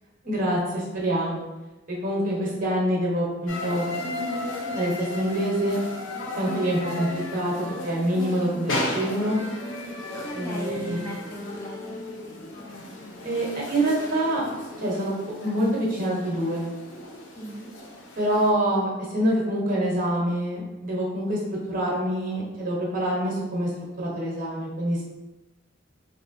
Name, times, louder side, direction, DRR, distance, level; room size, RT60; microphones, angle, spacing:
voice 1, 0.2-1.4 1.9-3.9 4.7-5.8 6.4-9.4 10.3-11.0 13.2-14.4 14.8-15.1 15.4-16.7 18.2-21.4 21.7-23.7 24.0-25.2, right 1 dB, 45° right, -4 dB, 1.0 m, -26 dB
voice 2, 2.2-2.5 10.1-12.0 17.3-17.7, equal, 15° left, -4 dB, 0.4 m, -37 dB
sound 1, 3.5-18.5, left 1 dB, 80° left, 0.5 m, -35 dB
3.3 x 2.6 x 2.5 m, 1.0 s
head